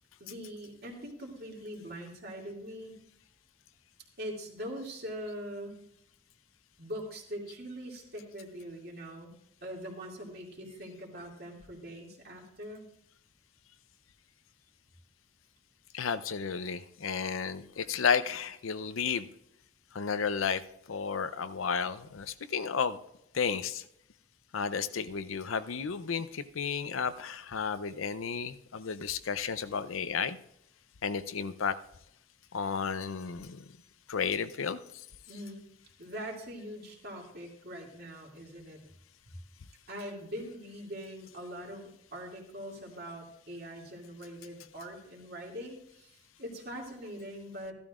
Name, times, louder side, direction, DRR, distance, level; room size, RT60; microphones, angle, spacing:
voice 1, 0.2-3.0 4.2-5.8 6.8-9.3 9.6-12.9 35.3-35.6 36.0-38.8 39.3-39.4 39.9-47.7, equal, 50° right, -2 dB, 2.5 m, -42 dB
voice 2, 15.9-19.3 19.9-20.6 20.9-23.0 23.3-23.8 24.5-30.4 31.0-31.8 32.5-33.6 34.1-35.0 35.3-35.4, left 6 dB, 85° left, 12 dB, 0.6 m, -32 dB
14.5 x 12.5 x 2.5 m, 0.75 s
head